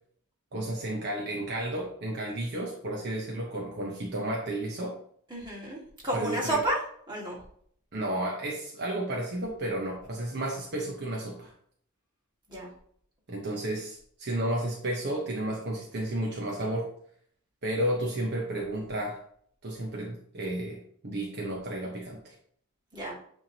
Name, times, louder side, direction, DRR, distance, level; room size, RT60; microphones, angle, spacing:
voice 1, 0.5-5.0 6.1-6.6 7.9-11.5 13.3-16.9 17.6-19.2 19.6-22.3, right 1 dB, 50° right, -2 dB, 1.0 m, -32 dB
voice 2, 5.3-6.8 7.1-7.4 12.5-12.7 22.9-23.1, right 1 dB, 20° right, -5 dB, 2.1 m, -31 dB
8.9 x 3.6 x 2.9 m, 0.62 s
head